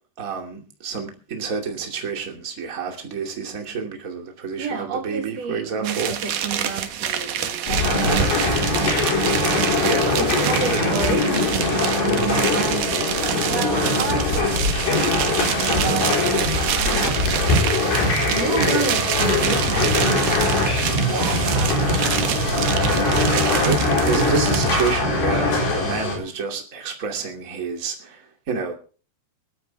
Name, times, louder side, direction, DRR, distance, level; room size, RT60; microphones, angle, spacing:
voice 1, 0.2-6.1 9.7-10.1 10.5-10.8 23.3-28.8, right 5 dB, 25° right, 2 dB, 2.3 m, -29 dB
voice 2, 4.6-8.3 8.7-11.3 12.0-14.6 15.1-20.4 21.0-21.8 22.7-23.1, right 5 dB, 45° right, 3 dB, 3.2 m, -31 dB
sound 1, 5.8-25.0, right 9 dB, 60° right, 2.6 m, -27 dB
sound 2, 7.7-26.2, left 2 dB, 85° left, 6.6 m, -22 dB
20.0 x 13.5 x 3.5 m, 0.39 s
omnidirectional pair, 4.7 m